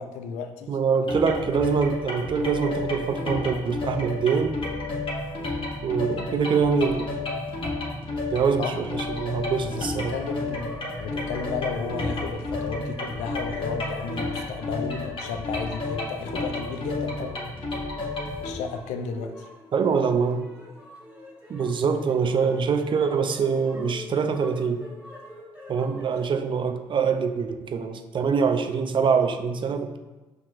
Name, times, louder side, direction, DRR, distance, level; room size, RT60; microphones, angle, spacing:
voice 1, 0.0-0.8 8.6-9.0 9.6-17.4 18.4-19.5, left 5 dB, 80° left, 7 dB, 0.4 m, -33 dB
voice 2, 0.7-4.6 5.8-7.2 8.3-10.1 19.7-20.5 21.5-24.8 25.7-30.0, right 5 dB, 45° right, 7 dB, 0.4 m, -24 dB
sound 1, 1.1-18.5, left 2 dB, 45° left, 0.9 m, -31 dB
sound 2, 9.9-26.3, equal, 10° right, 1.3 m, -46 dB
5.7 x 2.9 x 2.5 m, 1.1 s
supercardioid pair, 60°, 12 cm